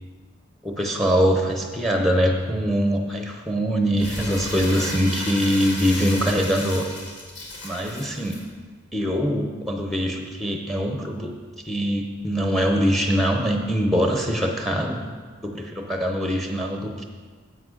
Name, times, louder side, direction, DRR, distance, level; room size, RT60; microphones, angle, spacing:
voice 1, 0.6-6.9 7.6-8.4 8.9-11.3 11.6-15.0 15.4-17.0, equal, ahead, 3 dB, 0.6 m, -23 dB
Crumpling crinkling, 4.0-8.4, left 1 dB, 60° left, 2.0 m, -34 dB
10.0 x 8.0 x 3.8 m, 1.5 s
head